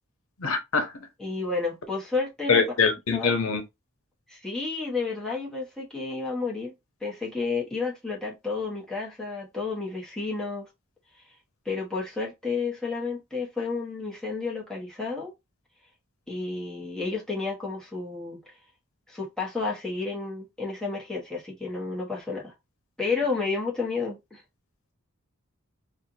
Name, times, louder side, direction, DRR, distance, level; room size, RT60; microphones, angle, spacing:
voice 1, 0.4-0.9 2.5-3.6, left 5 dB, 80° left, 0.9 m, -23 dB
voice 2, 1.2-2.6 3.1-3.4 4.3-6.7 7.0-10.7 11.6-15.3 16.3-18.4 19.1-22.5 23.0-24.4, left 4 dB, 5° left, 1.2 m, -31 dB
4.4 x 2.5 x 2.7 m
head